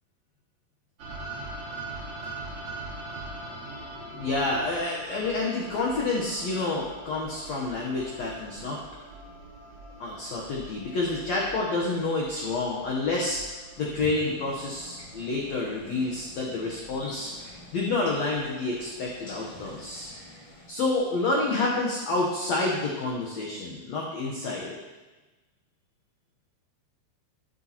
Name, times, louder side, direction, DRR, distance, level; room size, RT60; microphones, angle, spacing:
sound 1, 1.0-21.0, right 2 dB, 45° right, 2.5 m, -43 dB
voice 1, 4.1-8.8 10.0-20.1 20.7-24.8, left 2 dB, 90° left, -3 dB, 1.5 m, -29 dB
sound 2, 13.7-20.7, equal, 35° left, 2.4 m, -47 dB
11.0 x 8.3 x 2.9 m, 1.2 s
omnidirectional pair, 4.5 m